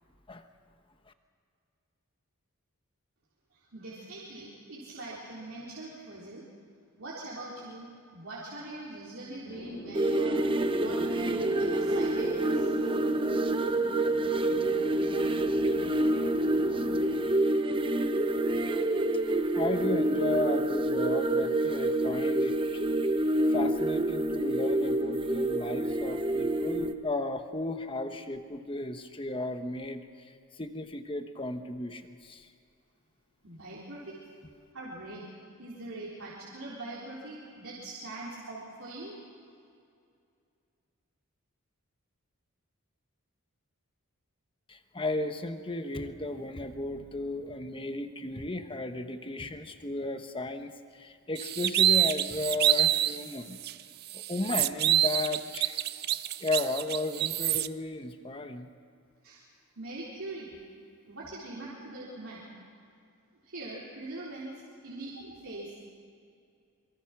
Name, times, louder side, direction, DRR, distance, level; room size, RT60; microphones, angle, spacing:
voice 1, 3.7-6.4 7.0-10.4 10.7-12.7 33.4-34.2 34.7-35.2 35.6-39.1 59.2-59.4 59.8-60.5 61.1-62.5 63.4-64.5 64.8-65.8, right 2 dB, 65° right, -7 dB, 4.1 m, -42 dB
sound 1, 9.5-17.1, equal, 85° left, 6.8 m, -41 dB
sound 2, 9.9-26.9, right 1 dB, 25° right, 0.9 m, -27 dB
voice 2, 19.5-22.8 23.5-32.5 44.7-53.6 54.1-55.8 56.4-58.7, left 2 dB, 25° left, 7 dB, 1.2 m, -34 dB
sound 3, 51.4-53.2 53.6-53.7 54.1-57.7, right 12 dB, 45° right, 0.5 m, -26 dB
26.5 x 23.5 x 6.1 m, 2.4 s
head